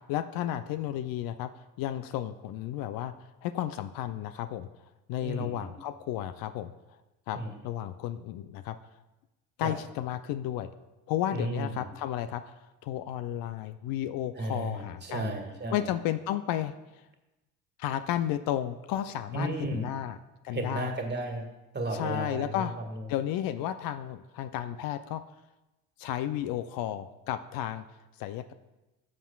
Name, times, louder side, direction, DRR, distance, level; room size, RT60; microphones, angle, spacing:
voice 1, 0.1-1.5 1.8-3.1 3.4-4.7 5.1-6.7 7.3-8.8 9.6-10.7 11.1-12.4 12.8-15.3 15.7-16.7 17.8-20.2 20.4-20.9 21.9-22.7 23.1-25.2 26.0-27.8 28.2-28.4, left 12 dB, 60° left, 12 dB, 0.5 m, -33 dB
voice 2, 5.2-5.8 7.3-7.5 9.6-9.8 11.3-11.9 14.3-15.9 19.3-19.9 20.5-21.5 21.7-23.1, right 2 dB, 25° right, 3 dB, 1.8 m, -34 dB
13.0 x 7.4 x 2.3 m, 1.0 s
hypercardioid pair, 65°, 39 cm